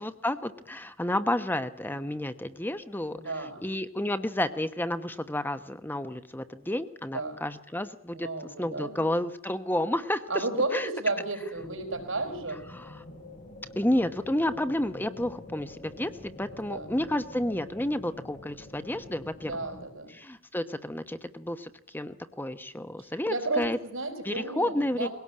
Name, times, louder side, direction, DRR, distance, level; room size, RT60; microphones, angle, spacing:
voice 1, 0.0-8.3 8.6-10.4 10.7-10.9 12.7-12.9 13.8-19.5 20.1-23.8 24.2-25.1, left 1 dB, 10° left, 11 dB, 1.0 m, -31 dB
voice 2, 3.1-3.7 7.1-7.4 8.1-9.1 10.3-12.6 16.6-16.9 19.4-20.1 23.3-25.1, right 2 dB, 80° right, 6 dB, 4.9 m, -33 dB
sound 1, 11.5-19.9, left 1 dB, 40° left, 6.2 m, -47 dB
22.0 x 17.5 x 8.7 m, 0.69 s
head